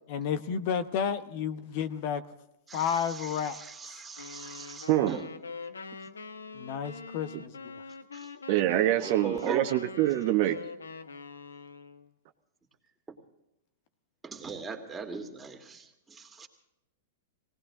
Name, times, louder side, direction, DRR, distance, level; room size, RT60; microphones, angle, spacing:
voice 1, 0.1-2.2 2.7-3.9 6.5-7.5, left 7 dB, 50° left, 13 dB, 1.0 m, -31 dB
voice 2, 2.7-5.2 8.1-8.3 9.0-9.7 13.1-13.2 14.2-16.5, right 5 dB, 15° right, 2 dB, 2.6 m, -40 dB
sound 1, 4.2-12.1, left 4 dB, 85° left, 1.0 m, -44 dB
voice 3, 8.5-10.6, right 14 dB, 50° right, 7 dB, 1.1 m, -25 dB
19.5 x 18.5 x 3.8 m, 0.89 s
hypercardioid pair, 105°, 0 cm